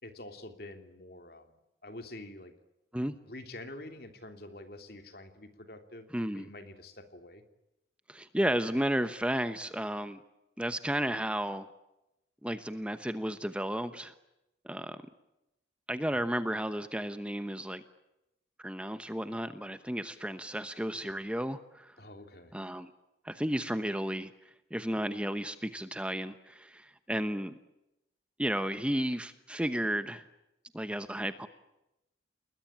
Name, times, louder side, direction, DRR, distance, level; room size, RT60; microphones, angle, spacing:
voice 1, 0.0-2.5 3.2-6.1 6.3-7.4 16.1-16.3 22.0-22.5, left 1 dB, 55° left, 7 dB, 3.0 m, -47 dB
voice 2, 6.1-6.5 8.1-10.2 10.6-11.7 12.4-14.1 14.6-15.0 15.9-17.8 18.6-22.0 22.5-22.9 23.2-24.3 24.7-27.6 28.4-30.2 30.7-31.5, equal, 5° right, 10 dB, 1.0 m, -33 dB
29.5 x 21.0 x 9.0 m, 0.90 s
head